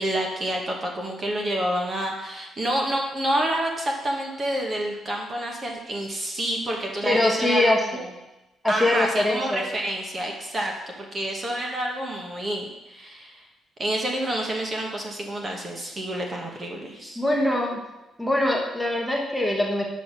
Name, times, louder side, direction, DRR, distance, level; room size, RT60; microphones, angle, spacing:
voice 1, 0.0-8.1 8.7-13.4 13.8-17.2, right 1 dB, 30° right, 1 dB, 1.1 m, -28 dB
voice 2, 7.0-7.8 8.6-9.6 16.8-17.8 18.2-19.9, left 1 dB, 5° left, -2 dB, 1.2 m, -23 dB
6.5 x 6.1 x 6.0 m, 0.98 s
cardioid pair, 155°, 0 cm